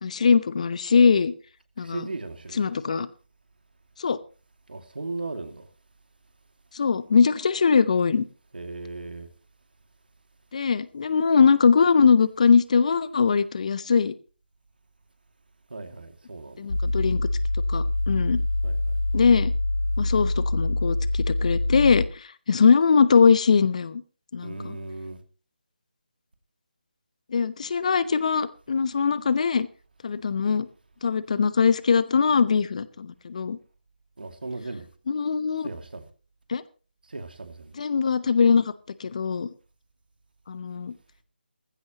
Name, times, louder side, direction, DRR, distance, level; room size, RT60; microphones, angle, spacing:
voice 1, 0.0-1.3 1.8-2.1 2.6-3.1 4.0-4.2 6.7-8.2 10.5-14.1 16.6-17.3 17.7-18.4 19.1-19.5 20.0-24.0 24.3-24.8 27.3-29.7 30.0-30.7 31.0-33.6 35.1-35.7 36.5-36.6 37.8-38.6 39.0-39.5 40.5-40.9, left 5 dB, 40° left, 0.8 m, -21 dB
voice 2, 1.8-2.8 4.7-5.7 8.5-9.3 15.7-16.6 18.6-18.8 24.4-25.2 34.2-34.9 35.6-36.1 37.1-37.7, right 3 dB, 65° right, 2.4 m, -37 dB
sound 1, 16.7-22.1, left 2 dB, 80° left, 1.0 m, -25 dB
19.0 x 15.0 x 3.0 m
figure-of-eight pair, 155°, 5 cm